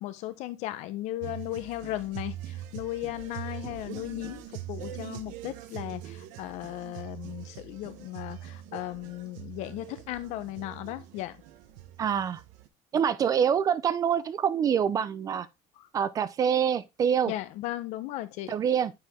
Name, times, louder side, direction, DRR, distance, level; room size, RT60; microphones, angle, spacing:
voice 1, 0.0-4.4 4.7-11.4 17.3-18.5, left 15 dB, 60° left, 0.8 m, -36 dB
sound 1, 1.2-12.7, right 12 dB, 80° right, 1.1 m, -43 dB
voice 2, 12.0-12.4 12.9-15.5 15.9-17.3 18.5-18.9, right 8 dB, 25° right, 0.4 m, -25 dB
8.6 x 4.8 x 3.6 m
cardioid pair, 170°, 13 cm